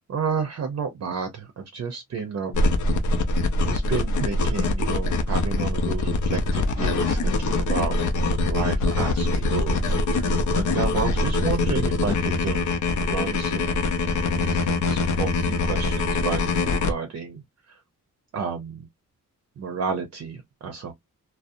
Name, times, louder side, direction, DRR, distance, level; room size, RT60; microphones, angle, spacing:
voice 1, 0.1-2.7 3.6-13.8 14.3-17.4 18.3-18.9 19.6-20.9, right 6 dB, 50° right, 0.6 m, -31 dB
sound 1, 2.5-16.9, left 3 dB, 65° left, 0.6 m, -23 dB
2.6 x 2.0 x 2.4 m
wide cardioid pair, 140°, 32 cm